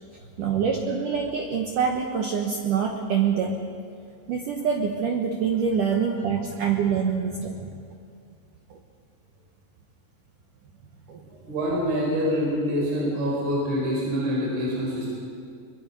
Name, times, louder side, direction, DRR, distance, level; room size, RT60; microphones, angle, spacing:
voice 1, 0.4-3.6 4.3-7.8 8.7-8.8 11.1-11.2, right 6 dB, 85° right, 3 dB, 1.8 m, -25 dB
voice 2, 11.2-15.1, equal, 65° right, -4 dB, 6.9 m, -26 dB
23.5 x 23.0 x 5.5 m, 2.3 s
omnidirectional pair, 5.6 m